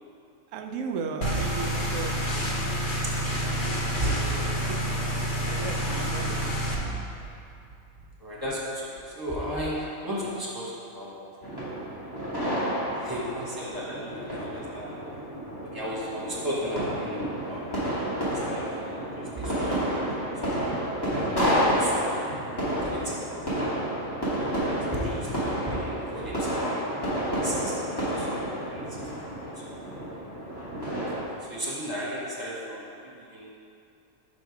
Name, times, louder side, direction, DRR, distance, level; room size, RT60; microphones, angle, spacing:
voice 1, 0.5-2.4 4.7-4.8 5.5-6.9, right 5 dB, 75° right, 5 dB, 0.9 m, -35 dB
sound 1, 1.2-6.7, equal, 45° left, 0.8 m, -28 dB
voice 2, 3.0-3.6 3.9-4.4 8.2-11.2 13.0-15.0 15.6-17.8 18.4-20.1 20.5-20.7 21.5-22.5 22.8-23.6 24.6-27.0 27.3-28.4 28.7-29.8 31.4-33.5, equal, 15° right, -6 dB, 1.4 m, -35 dB
sound 2, 11.4-31.2, equal, 20° left, 1.6 m, -30 dB
5.8 x 5.2 x 4.8 m, 2.5 s
omnidirectional pair, 1.4 m